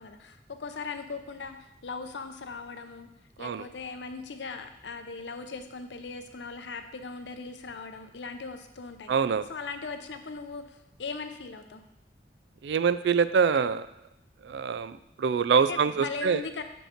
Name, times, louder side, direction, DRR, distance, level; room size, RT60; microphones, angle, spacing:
voice 1, 0.0-3.1 3.4-11.8 15.5-16.6, left 4 dB, 85° left, 8 dB, 0.6 m, -39 dB
voice 2, 9.1-9.4 12.6-13.9 14.4-16.4, right 6 dB, 80° right, 14 dB, 0.3 m, -25 dB
6.5 x 5.3 x 4.4 m, 0.85 s
head